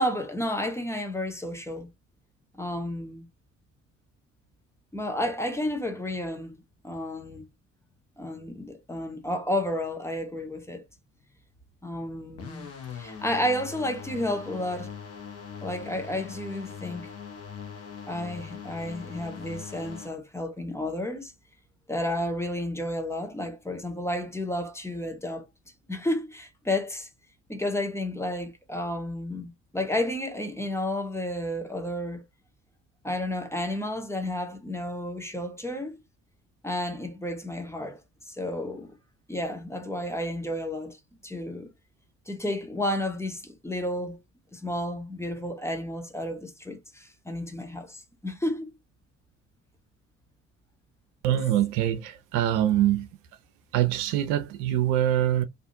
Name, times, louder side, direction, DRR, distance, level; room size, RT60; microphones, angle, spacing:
voice 1, 0.0-1.9 2.5-3.3 4.9-7.5 8.2-10.8 11.8-12.7 12.9-14.9 15.6-17.1 18.1-21.3 21.9-25.5 25.9-27.1 27.5-32.2 33.0-36.0 36.6-38.0 38.3-38.9 39.3-41.0 41.2-41.7 42.3-44.2 44.5-48.7, left 1 dB, 5° left, 0.7 m, -31 dB
sound 1, 12.4-20.1, left 7 dB, 40° left, 1.0 m, -41 dB
voice 2, 51.2-53.1 53.7-55.4, right 12 dB, 60° right, 0.5 m, -24 dB
2.5 x 2.4 x 2.6 m
figure-of-eight pair, 50°, 36 cm